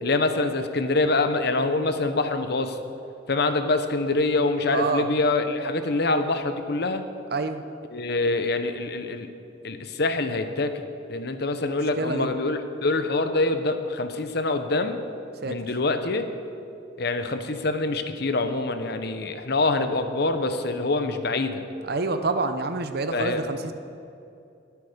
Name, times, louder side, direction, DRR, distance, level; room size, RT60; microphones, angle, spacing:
voice 1, 0.0-2.8 3.3-7.0 7.9-9.3 9.6-10.7 11.1-15.0 15.4-16.2 17.0-21.6 23.1-23.4, left 2 dB, 60° left, 8 dB, 1.0 m, -25 dB
voice 2, 4.7-5.1 7.3-7.6 12.0-12.3 15.4-15.6 21.8-23.7, right 3 dB, 55° right, 9 dB, 0.8 m, -27 dB
21.0 x 8.4 x 5.2 m, 2.7 s
head